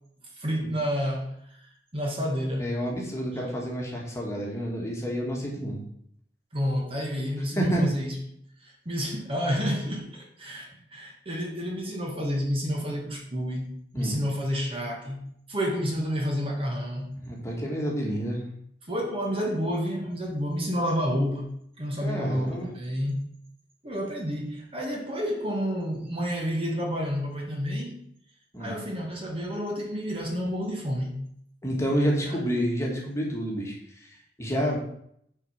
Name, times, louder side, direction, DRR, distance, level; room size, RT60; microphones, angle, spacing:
voice 1, 0.4-1.3 1.9-2.7 6.5-8.2 8.6-17.2 18.9-23.3 23.8-28.0 28.6-31.2 32.3-32.4, equal, 30° right, 0 dB, 1.4 m, -30 dB
voice 2, 2.6-5.8 7.6-7.9 13.9-14.2 17.2-18.4 22.0-22.7 28.5-28.8 31.6-33.8 34.0-34.8, equal, 15° left, -2 dB, 1.8 m, -29 dB
6.5 x 4.8 x 5.6 m, 0.69 s
head